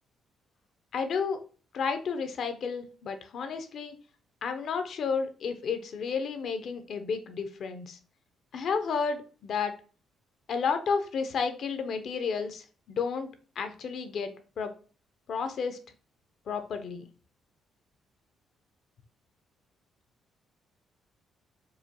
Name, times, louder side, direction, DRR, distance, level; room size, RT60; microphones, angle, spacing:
voice 1, 0.9-1.4 1.7-3.9 4.4-8.0 8.5-9.7 10.5-13.3 13.6-14.7 15.3-15.8 16.5-17.1, left 5 dB, 65° left, 8 dB, 0.6 m, -31 dB
4.8 x 2.3 x 2.8 m, 0.38 s
cardioid pair, 90°, 0 cm